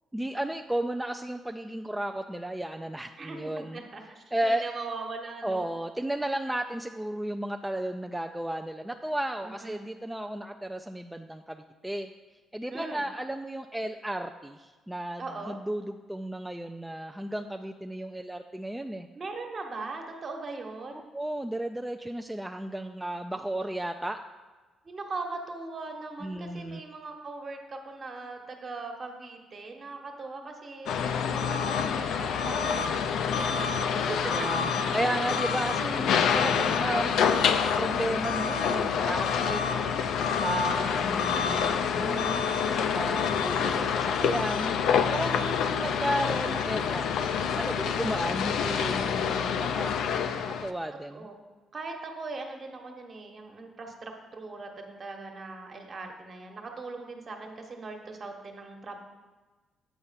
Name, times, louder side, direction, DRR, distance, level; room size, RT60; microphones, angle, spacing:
voice 1, 0.1-3.8 4.3-4.6 5.4-12.1 12.5-19.1 21.1-24.2 26.2-26.8 34.3-39.6 40.4-42.4 42.7-44.7 45.1-51.3, right 1 dB, 10° right, 5 dB, 0.3 m, -34 dB
voice 2, 3.2-5.7 9.4-9.9 12.7-13.0 15.2-15.6 19.1-21.1 24.8-31.0 31.3-34.2 39.3-39.9 44.9-45.5 51.1-51.4 51.7-59.0, right 3 dB, 45° right, 3 dB, 1.2 m, -40 dB
sound 1, 30.9-50.7, left 7 dB, 80° left, 0.4 m, -27 dB
8.1 x 4.3 x 5.7 m, 1.3 s
cardioid pair, 90°, 0 cm